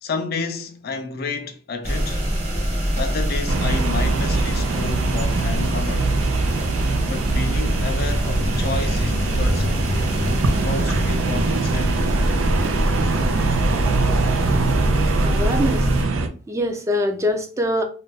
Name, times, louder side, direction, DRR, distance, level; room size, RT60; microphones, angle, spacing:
voice 1, 0.0-2.3 3.0-6.2 7.1-9.7 10.6-12.0, left 4 dB, 50° left, 0.4 m, -30 dB
sound 1, 1.8-16.0, equal, 35° right, 1.3 m, -24 dB
sound 2, 3.5-16.3, right 3 dB, 90° right, 0.5 m, -23 dB
voice 2, 15.2-15.9 16.5-17.8, left 1 dB, 15° right, 0.4 m, -23 dB
2.5 x 2.2 x 3.9 m
head